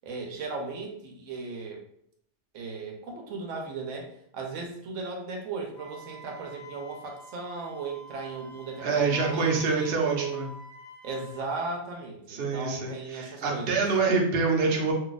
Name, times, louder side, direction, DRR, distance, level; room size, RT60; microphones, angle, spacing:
voice 1, 0.0-1.8 2.5-10.4 11.0-13.8, right 4 dB, 90° right, 1 dB, 1.0 m, -36 dB
Wind instrument woodwind instrument, 5.8-11.4, left 1 dB, ahead, 0.8 m, -48 dB
voice 2, 8.8-10.5 12.3-14.9, right 4 dB, 55° right, 0 dB, 0.8 m, -26 dB
2.6 x 2.3 x 3.9 m, 0.69 s
omnidirectional pair, 1.3 m